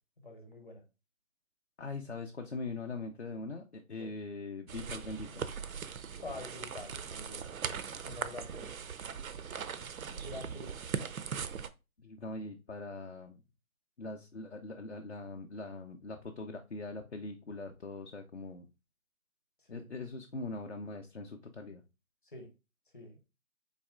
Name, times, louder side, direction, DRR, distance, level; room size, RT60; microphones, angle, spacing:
voice 1, 0.2-0.8 4.0-4.1 6.2-8.9 10.1-11.0 19.6-19.8 22.2-22.5 22.9-23.2, left 2 dB, 35° left, 5 dB, 0.9 m, -47 dB
voice 2, 1.8-5.4 12.0-13.4 14.0-18.7 19.7-21.8, left 3 dB, 50° left, 3 dB, 0.5 m, -42 dB
sound 1, 4.7-11.7, right 6 dB, 70° right, 0.6 m, -40 dB
4.1 x 3.2 x 3.5 m, 0.28 s
figure-of-eight pair, 175°, 43 cm